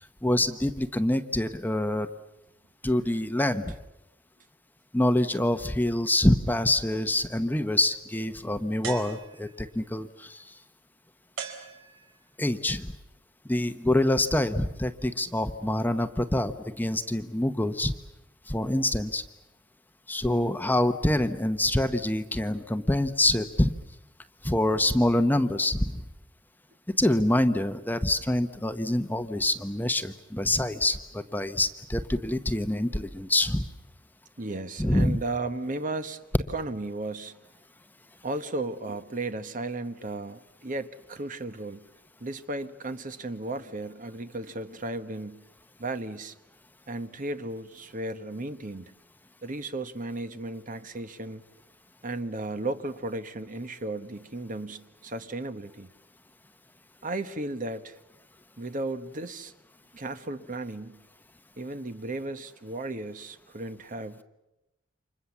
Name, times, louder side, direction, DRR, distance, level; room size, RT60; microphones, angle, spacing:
voice 1, 0.2-2.1 2.8-3.7 4.9-10.5 12.4-12.9 13.4-17.9 18.5-19.2 20.1-23.7 24.4-26.0 27.0-33.7 34.8-35.2, left 1 dB, 10° left, 9 dB, 1.0 m, -26 dB
sound 1, 8.8-9.7 11.4-12.3, right 6 dB, 75° right, 4.6 m, -40 dB
voice 2, 34.4-36.2 36.5-37.4 38.2-41.8 42.2-45.4 45.8-46.3 46.9-48.9 49.4-51.4 52.0-55.9 57.0-58.0 58.6-59.5 59.9-61.0 61.6-64.2, right 2 dB, 45° right, 10 dB, 1.2 m, -35 dB
29.5 x 26.0 x 7.3 m, 0.94 s
head